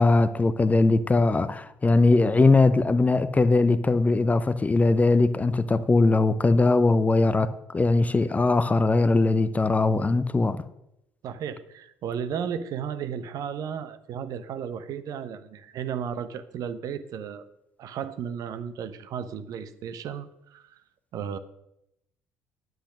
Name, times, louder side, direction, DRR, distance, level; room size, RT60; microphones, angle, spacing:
voice 1, 0.0-10.6, left 3 dB, 20° left, 0.7 m, -21 dB
voice 2, 11.2-17.4 17.8-20.8 21.1-21.4, right 8 dB, 50° right, 0.8 m, -34 dB
10.0 x 7.8 x 6.4 m
figure-of-eight pair, 55°, 8 cm